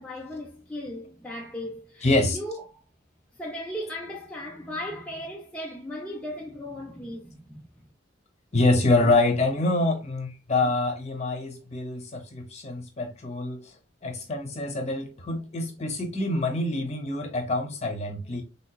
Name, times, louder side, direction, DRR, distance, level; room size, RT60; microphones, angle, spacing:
voice 1, 0.0-2.7 3.4-7.7, left 1 dB, 5° left, 0.5 m, -37 dB
voice 2, 2.0-2.4 8.5-13.6 14.0-18.4, left 2 dB, 35° left, 0.9 m, -26 dB
3.5 x 2.9 x 2.2 m
head